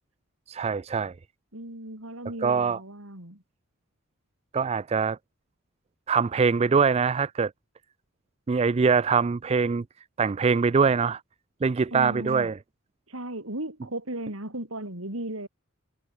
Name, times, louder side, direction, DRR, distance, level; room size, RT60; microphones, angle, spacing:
voice 1, 0.5-1.1 2.4-2.8 4.5-5.2 6.1-7.5 8.5-9.8 10.2-11.2 11.6-12.5, right 5 dB, 30° right, 0.3 m, -23 dB
voice 2, 1.5-3.4 11.9-12.5 13.1-15.5, right 1 dB, 75° right, 6.7 m, -36 dB
head